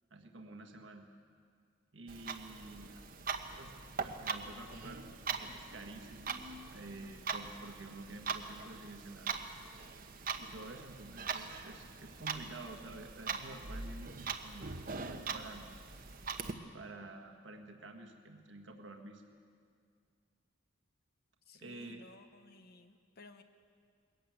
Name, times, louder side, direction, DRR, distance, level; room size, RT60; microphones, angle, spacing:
voice 1, 0.1-1.1 1.9-3.1 3.6-9.4 10.4-15.7 16.7-19.3 21.5-22.0, right 2 dB, 70° right, 3 dB, 1.6 m, -50 dB
Clock, 2.1-16.5, right 5 dB, 45° right, 1.1 m, -42 dB
voice 2, 21.5-23.4, left 2 dB, 55° left, 7 dB, 1.1 m, -57 dB
21.5 x 15.0 x 9.3 m, 2.2 s
head